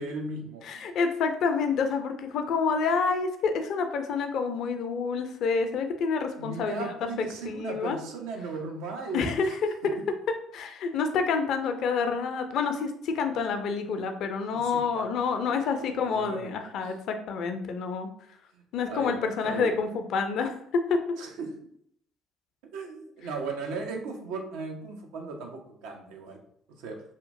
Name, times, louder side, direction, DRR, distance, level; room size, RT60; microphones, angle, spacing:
voice 1, 0.0-0.9 6.4-9.6 14.5-15.1 15.5-16.7 18.5-19.7 21.2-21.5 22.7-26.4 26.8-27.0, right 3 dB, 70° right, 2 dB, 0.5 m, -37 dB
voice 2, 0.7-8.0 9.1-9.7 10.5-18.1 18.7-21.0, left 5 dB, 55° left, 7 dB, 0.4 m, -28 dB
2.8 x 2.4 x 2.5 m, 0.69 s
figure-of-eight pair, 50°, 0 cm